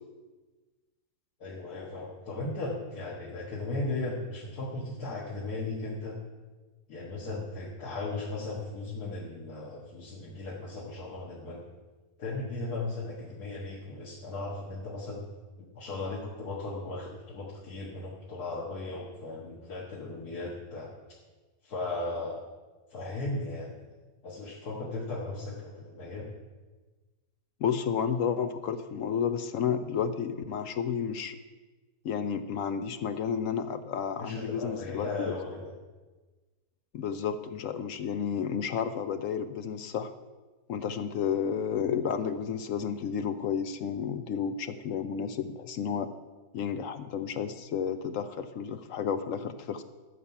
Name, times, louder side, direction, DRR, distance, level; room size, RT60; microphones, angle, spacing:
voice 1, 1.4-6.2 6.9-11.6 12.2-15.2 15.6-21.2 21.6-22.4 22.9-23.7 24.2-26.3 34.2-35.7, left 2 dB, 85° left, -4 dB, 2.0 m, -36 dB
voice 2, 27.6-31.4 32.0-35.3 36.9-40.1 40.7-46.1 46.5-49.8, left 7 dB, 70° left, 10 dB, 0.9 m, -31 dB
13.5 x 7.1 x 5.6 m, 1.3 s
omnidirectional pair, 1.6 m